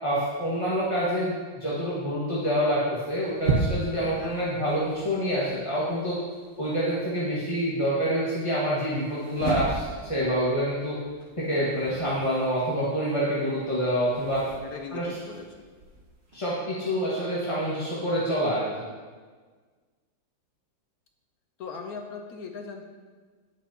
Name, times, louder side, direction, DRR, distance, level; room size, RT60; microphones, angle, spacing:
voice 1, 0.0-2.8 3.1-6.2 6.6-11.0 11.4-14.4 14.9-15.1 16.3-18.8, equal, 20° left, -9 dB, 1.4 m, -27 dB
sound 1, 3.0-7.3 8.9-16.4, right 3 dB, 40° right, 1.2 m, -35 dB
voice 2, 3.9-4.4 14.6-15.4 21.6-22.9, left 5 dB, 65° left, 3 dB, 0.9 m, -39 dB
17.5 x 6.0 x 2.8 m, 1.5 s
omnidirectional pair, 2.1 m